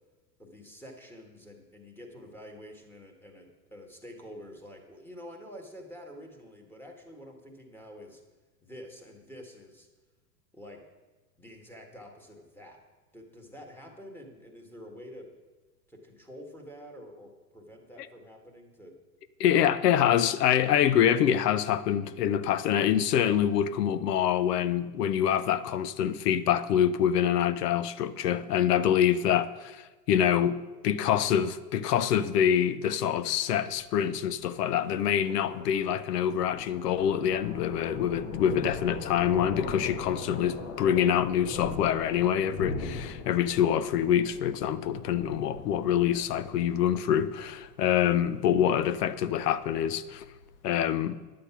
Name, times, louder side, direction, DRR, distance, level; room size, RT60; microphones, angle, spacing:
voice 1, 0.4-8.2 8.6-9.9 10.5-10.8 11.4-12.8 13.1-15.3 15.9-18.9, equal, 5° left, 1.5 m, -47 dB
voice 2, 19.4-50.2 50.6-51.2, left 9 dB, 70° left, 0.8 m, -26 dB
Thunder, 33.7-50.6, left 4 dB, 50° left, 1.5 m, -41 dB
10.5 x 7.8 x 5.7 m
hypercardioid pair, 130°, 49 cm